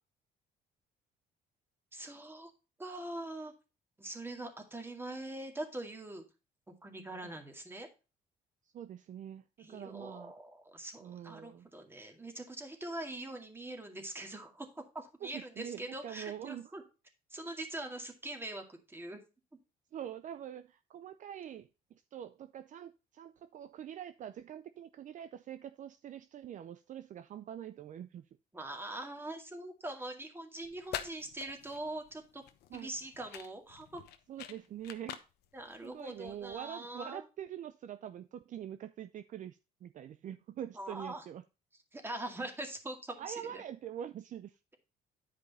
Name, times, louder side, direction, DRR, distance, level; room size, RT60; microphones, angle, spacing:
voice 1, 1.9-2.5 2.8-3.5 4.0-6.2 6.8-7.9 9.6-16.8 17.3-19.2 28.5-32.4 32.7-34.0 35.5-37.2 40.7-41.2 41.9-43.6, right 1 dB, 15° right, 2.1 m, -43 dB
voice 2, 8.7-10.3 11.0-11.7 15.2-16.7 19.9-21.7 22.1-28.2 32.7-32.9 34.3-35.2 35.8-41.4 43.2-44.6, right 10 dB, 50° right, 0.5 m, -44 dB
sound 1, 30.6-36.7, left 11 dB, 75° left, 1.0 m, -47 dB
10.0 x 5.2 x 4.1 m
cardioid pair, 110°, 17 cm